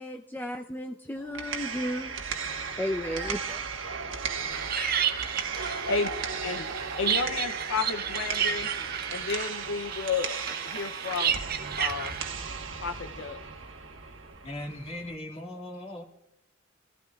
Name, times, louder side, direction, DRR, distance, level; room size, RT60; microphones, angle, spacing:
voice 1, 0.0-2.1 2.8-3.4 4.7-5.0, equal, 10° left, 2 dB, 0.5 m, -33 dB
sound 1, 1.2-15.1, right 5 dB, 75° right, 1.3 m, -36 dB
sound 2, 2.7-3.6 4.6-4.7 5.0-5.7 6.7-6.9, right 1 dB, 20° right, 1.3 m, -45 dB
sound 3, 4.5-12.3, right 8 dB, 50° right, 0.7 m, -32 dB
voice 2, 5.6-6.1 6.4-6.7 7.0-8.7 9.1-10.4 10.6-11.4 11.8-12.1 12.8-13.4, left 5 dB, 70° left, 9 dB, 0.5 m, -32 dB
voice 3, 14.4-16.0, left 1 dB, 30° left, 2 dB, 2.0 m, -38 dB
27.5 x 15.5 x 2.3 m, 0.76 s
head